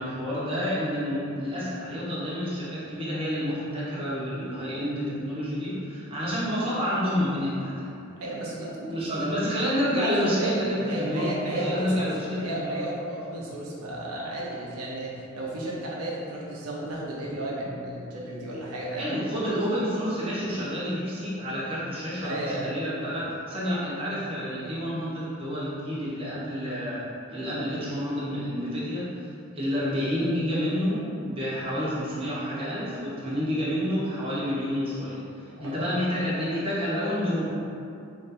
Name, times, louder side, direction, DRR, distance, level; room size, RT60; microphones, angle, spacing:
voice 1, 0.0-7.9 8.9-11.3 11.6-12.7 19.0-29.3 29.5-37.5, equal, 25° right, -9 dB, 0.9 m, -29 dB
voice 2, 8.2-9.3 9.9-12.1 12.3-19.1 22.2-22.8 35.5-35.8, right 1 dB, 85° right, -4 dB, 0.7 m, -33 dB
3.2 x 2.6 x 4.1 m, 2.6 s
head